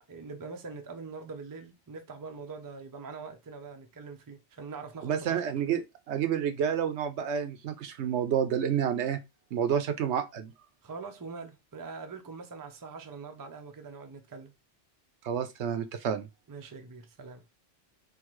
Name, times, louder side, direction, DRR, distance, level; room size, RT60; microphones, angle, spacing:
voice 1, 0.1-5.4 10.8-14.5 16.5-17.4, right 4 dB, 25° right, 0.4 m, -43 dB
voice 2, 5.0-5.8 6.1-9.2 9.5-10.5 15.2-16.3, right 8 dB, 70° right, 0.9 m, -29 dB
3.8 x 2.8 x 3.0 m
omnidirectional pair, 1.2 m